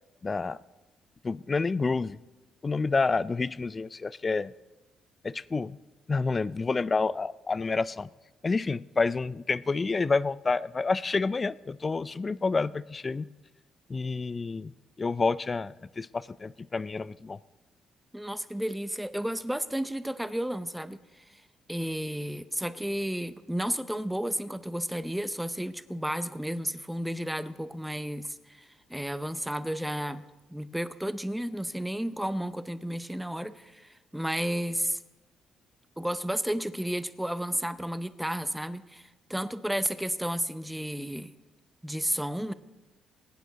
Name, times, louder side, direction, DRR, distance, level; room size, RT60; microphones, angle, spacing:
voice 1, 0.2-0.6 1.2-2.2 2.6-4.5 5.2-5.8 6.1-8.1 8.4-13.3 13.9-14.7 15.0-17.4, left 4 dB, 30° left, 18 dB, 0.4 m, -29 dB
voice 2, 18.1-21.4 21.7-35.0 36.0-41.3 41.8-42.5, equal, 5° right, 12 dB, 0.7 m, -32 dB
22.5 x 9.3 x 4.0 m, 1.1 s
cardioid pair, 100°, 0 cm